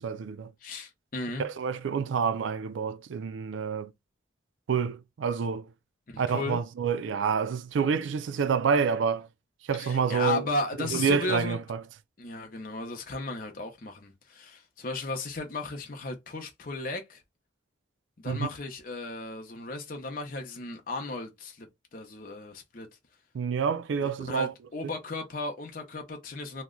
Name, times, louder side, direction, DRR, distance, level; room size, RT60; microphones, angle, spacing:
voice 1, 0.0-0.5 1.4-3.9 4.7-5.7 6.2-9.3 9.7-10.4 10.8-11.8 18.3-18.5 23.3-24.5, right 6 dB, 80° right, 0.4 m, -28 dB
voice 2, 0.6-1.5 6.1-6.6 9.8-11.6 12.2-17.2 18.2-22.9 24.0-26.6, left 2 dB, 45° left, 0.7 m, -35 dB
2.9 x 2.1 x 3.6 m
head